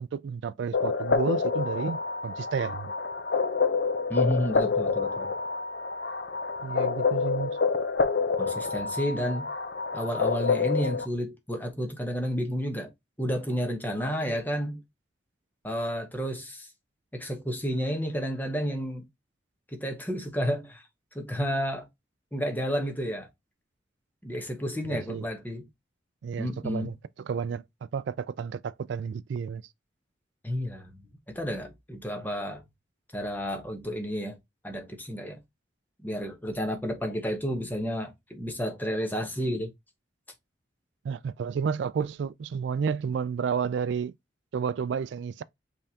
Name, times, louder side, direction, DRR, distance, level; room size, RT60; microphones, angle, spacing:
voice 1, 0.0-2.9 6.6-7.5 24.9-25.3 26.2-27.6 27.9-29.6 41.0-44.1 44.5-45.4, right 6 dB, 75° right, 0.3 m, -31 dB
sound 1, 0.7-11.1, left 4 dB, 60° left, 0.6 m, -28 dB
voice 2, 4.1-5.3 8.4-9.5 9.9-12.9 13.2-14.8 15.6-16.7 17.1-19.0 19.7-20.8 21.1-21.9 22.3-23.3 24.2-25.7 26.4-26.9 30.4-31.0 31.3-32.6 33.1-34.4 34.6-35.4 36.0-39.7, equal, 10° left, 1.0 m, -31 dB
5.4 x 3.5 x 2.8 m
head